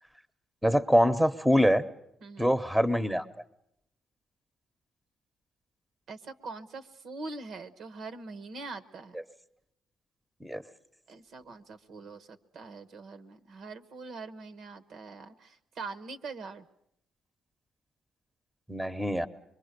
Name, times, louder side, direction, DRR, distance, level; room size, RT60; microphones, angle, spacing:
voice 1, 0.6-1.8 2.4-3.2 10.4-10.6 18.7-19.3, equal, ahead, 12 dB, 0.9 m, -24 dB
voice 2, 2.2-2.5 6.1-9.1 11.1-16.7, right 3 dB, 70° right, 12 dB, 1.1 m, -43 dB
25.5 x 23.0 x 6.7 m, 0.78 s
cardioid pair, 90°, 0 cm